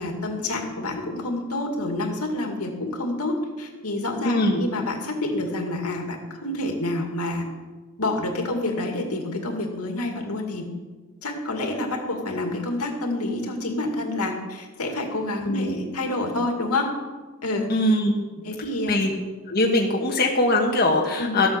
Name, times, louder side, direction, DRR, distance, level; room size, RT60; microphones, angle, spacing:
voice 1, 0.0-7.5 8.0-10.6 11.2-16.9 17.4-17.7 18.4-18.9 21.2-21.4, left 2 dB, 80° left, 3 dB, 2.3 m, -28 dB
voice 2, 4.2-4.6 15.4-15.8 17.7-18.1 18.9-19.1 19.5-21.5, left 1 dB, 45° left, 0 dB, 1.4 m, -21 dB
14.0 x 8.5 x 6.8 m, 1.3 s
head